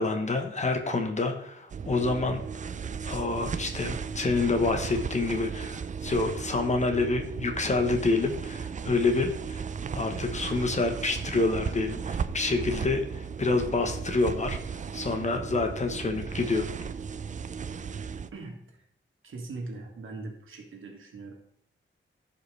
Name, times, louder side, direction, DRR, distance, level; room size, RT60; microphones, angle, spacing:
voice 1, 0.0-2.4 3.0-9.6 9.9-16.6, left 3 dB, 35° left, 5 dB, 1.1 m, -28 dB
sound 1, 1.7-18.3, right 6 dB, 40° right, 0.4 m, -36 dB
voice 2, 18.2-18.8 19.2-21.3, right 3 dB, 85° right, 1 dB, 2.0 m, -41 dB
15.5 x 5.3 x 3.3 m, 0.69 s
wide cardioid pair, 170°, 20 cm